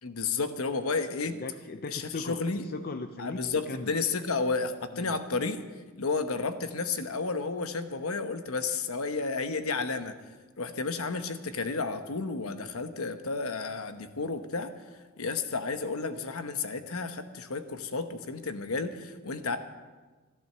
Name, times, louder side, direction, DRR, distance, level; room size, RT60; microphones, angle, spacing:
voice 1, 0.0-1.4 1.9-2.7 3.2-5.6 6.0-10.1 10.6-14.7 15.2-19.6, left 4 dB, 85° left, 9 dB, 1.0 m, -32 dB
voice 2, 1.3-4.0 4.9-5.2, left 3 dB, 45° left, 8 dB, 0.5 m, -39 dB
12.5 x 12.0 x 6.8 m, 1.3 s
head